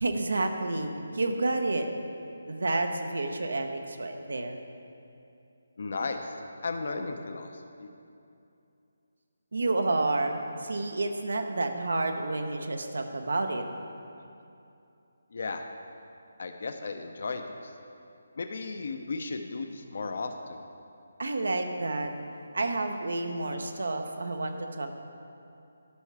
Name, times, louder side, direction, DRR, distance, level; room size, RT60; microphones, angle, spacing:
voice 1, 0.0-1.9 2.5-4.6 9.5-13.6 21.2-22.1 22.5-24.9, right 2 dB, 80° right, 5 dB, 0.8 m, -30 dB
voice 2, 5.8-6.3 6.6-7.9 15.3-15.7 16.4-17.7 18.4-20.6, left 3 dB, 60° left, 6 dB, 0.7 m, -35 dB
11.5 x 5.6 x 4.8 m, 2.7 s
hypercardioid pair, 165°, 0 cm